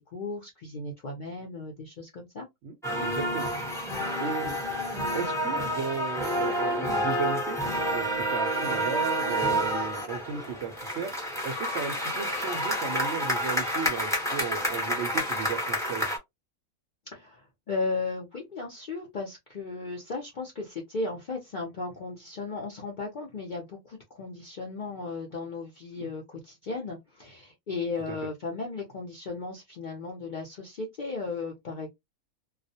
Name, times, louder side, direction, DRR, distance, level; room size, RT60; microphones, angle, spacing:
voice 1, 0.1-2.5 4.0-4.1 17.1-31.9, left 3 dB, 55° left, 0.5 m, -36 dB
voice 2, 2.6-3.5 4.2-4.6 5.1-7.6 7.9-11.1 11.4-16.1 26.0-26.1 28.1-28.2, right 6 dB, 65° right, 0.7 m, -35 dB
sound 1, 2.8-16.2, equal, 5° left, 0.4 m, -29 dB
2.3 x 2.1 x 2.6 m
omnidirectional pair, 1.5 m